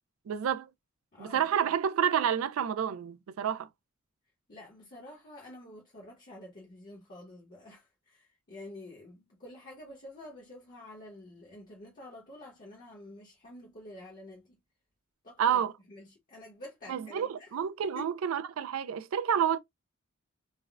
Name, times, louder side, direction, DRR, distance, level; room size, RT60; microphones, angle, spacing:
voice 1, 0.3-0.7 1.2-3.7 15.4-15.7 16.9-19.6, right 8 dB, 80° right, 0.4 m, -29 dB
voice 2, 1.1-1.6 4.5-14.6 15.2-17.5 17.9-18.1, left 1 dB, 45° left, 1.0 m, -49 dB
3.4 x 2.1 x 2.3 m
head